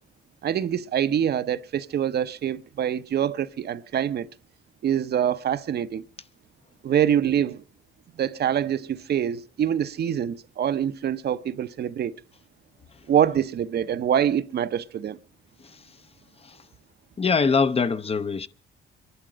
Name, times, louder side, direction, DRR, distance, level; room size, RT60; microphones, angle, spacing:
voice 1, 0.4-4.3 4.8-6.1 6.8-7.6 8.2-12.1 13.1-15.2, right 9 dB, 55° right, 0.7 m, -25 dB
voice 2, 17.2-18.5, left 5 dB, 30° left, 0.6 m, -23 dB
23.5 x 11.5 x 5.0 m
cardioid pair, 90°, 20 cm